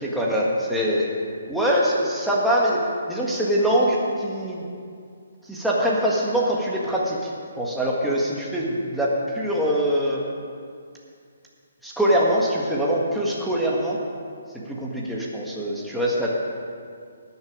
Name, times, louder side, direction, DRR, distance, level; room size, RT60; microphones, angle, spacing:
voice 1, 0.0-1.1 1.5-2.8 3.1-4.6 5.4-10.2 11.8-14.0 14.7-16.4, equal, ahead, -6 dB, 1.8 m, -23 dB
19.0 x 7.1 x 5.1 m, 2.2 s
figure-of-eight pair, 140°, 0 cm